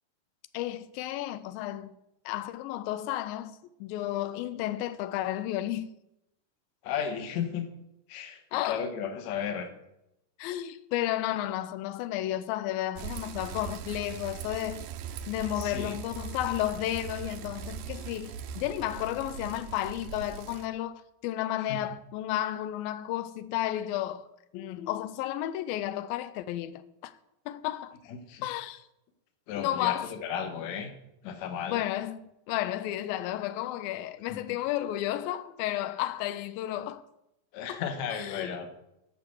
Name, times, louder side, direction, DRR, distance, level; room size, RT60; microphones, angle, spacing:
voice 1, 0.5-1.9 2.3-5.9 8.5-8.8 10.4-14.9 15.3-24.3 24.5-27.1 27.5-28.0 28.4-28.8 29.6-30.1 31.7-32.2 32.5-37.0 37.7-37.8 38.2-38.5, left 13 dB, 90° left, 2.4 m, -32 dB
voice 2, 6.8-7.7 8.1-9.7 15.5-16.0 21.6-21.8 28.1-28.5 29.5-30.9 31.2-31.8 34.3-34.4 37.5-38.7, left 7 dB, 60° left, 2.3 m, -34 dB
Bicycle, 13.0-20.7, right 8 dB, 75° right, 2.1 m, -40 dB
12.0 x 5.9 x 7.7 m
omnidirectional pair, 4.1 m